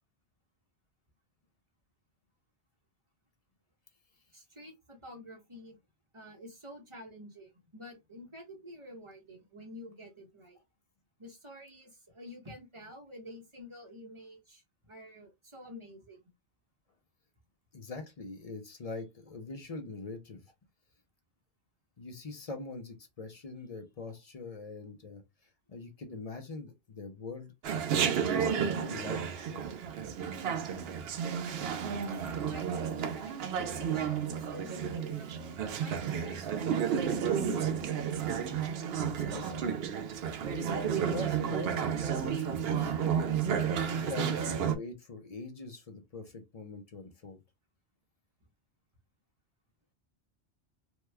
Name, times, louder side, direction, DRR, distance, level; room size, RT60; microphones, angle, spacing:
voice 1, 4.3-5.8 6.1-10.6 11.2-16.2 32.5-38.2, left 1 dB, 30° right, 1.0 m, -49 dB
voice 2, 17.7-20.4 22.0-25.2 25.7-27.8 28.2-29.8 39.1-39.7 40.4-43.2 43.8-47.4, left 3 dB, 45° left, 0.5 m, -43 dB
Chatter, 27.6-44.7, right 7 dB, 65° right, 0.7 m, -32 dB
3.0 x 2.2 x 3.3 m
omnidirectional pair, 1.2 m